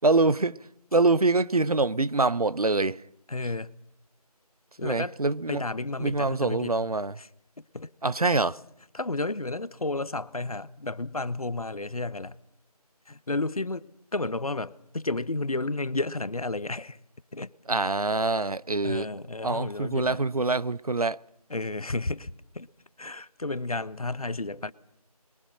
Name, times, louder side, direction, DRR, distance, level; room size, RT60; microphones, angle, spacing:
voice 1, 0.0-0.6 0.9-3.0 4.8-5.6 6.0-7.2 8.0-8.6 17.7-19.1 19.4-21.2, right 3 dB, 65° right, 0.8 m, -25 dB
voice 2, 3.3-3.7 4.8-5.2 5.5-6.7 7.2-7.3 7.6-7.9 8.9-12.4 13.1-13.8 14.1-17.0 17.3-17.5 18.8-20.2 21.5-22.7 23.0-24.7, left 2 dB, 65° left, 1.0 m, -32 dB
26.5 x 22.0 x 6.4 m
figure-of-eight pair, 170°, 20 cm